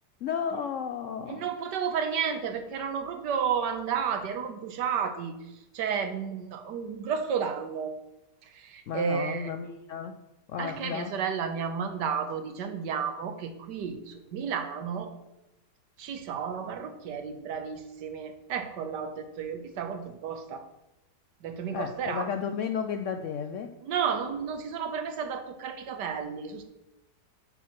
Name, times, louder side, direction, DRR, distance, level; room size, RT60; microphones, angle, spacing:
voice 1, 0.2-1.5 8.9-10.2 10.5-11.2 21.7-23.8, left 7 dB, 85° left, 7 dB, 0.6 m, -33 dB
voice 2, 1.3-5.4 5.7-8.0 8.4-9.5 10.6-15.1 16.0-20.7 21.4-22.3 23.8-26.6, right 7 dB, 75° right, 8 dB, 1.5 m, -32 dB
9.0 x 4.7 x 5.9 m, 0.91 s
omnidirectional pair, 1.9 m